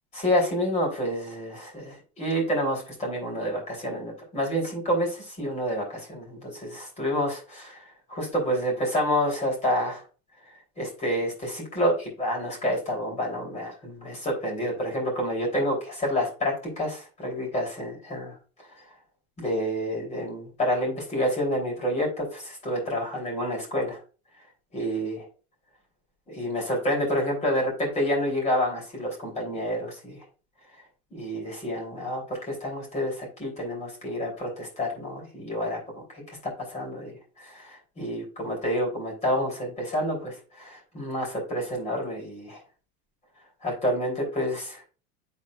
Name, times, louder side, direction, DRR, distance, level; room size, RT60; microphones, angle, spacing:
voice 1, 0.1-7.8 8.1-10.0 10.8-18.3 19.4-24.0 24.7-25.3 26.3-30.2 31.1-35.8 36.1-42.6 43.6-44.8, equal, 20° left, -1 dB, 3.1 m, -28 dB
10.5 x 4.3 x 2.3 m, 0.35 s
cardioid pair, 160°, 31 cm